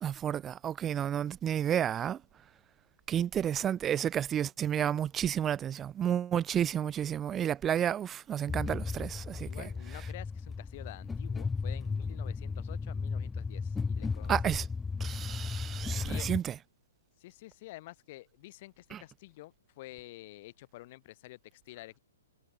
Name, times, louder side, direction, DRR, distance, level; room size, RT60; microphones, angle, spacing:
voice 1, 0.0-2.2 3.1-9.5 14.3-14.6 15.0-16.5 18.9-19.0, right 9 dB, 20° right, 0.7 m, -31 dB
sound 1, 8.5-16.4, left 4 dB, 10° left, 1.6 m, -35 dB
voice 2, 9.5-14.3 15.9-16.3 17.2-22.0, left 18 dB, 40° left, 6.1 m, -49 dB
figure-of-eight pair, 120°, 0 cm